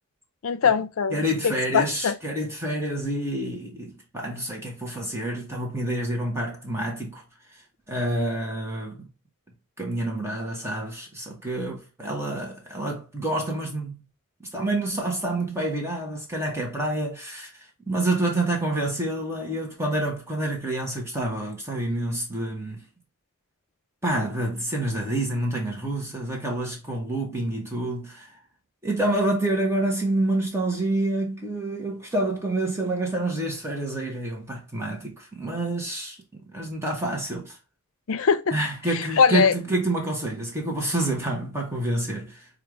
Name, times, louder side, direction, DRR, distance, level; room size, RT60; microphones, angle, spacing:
voice 1, 0.4-2.2 38.1-38.5 38.9-39.5, left 6 dB, 70° left, 0.5 m, -22 dB
voice 2, 1.1-7.2 7.9-9.1 9.8-14.0 14.4-22.8 24.0-28.3 28.8-36.2 36.4-37.6 38.5-42.5, right 1 dB, 15° right, 1.1 m, -28 dB
5.4 x 2.5 x 3.1 m
head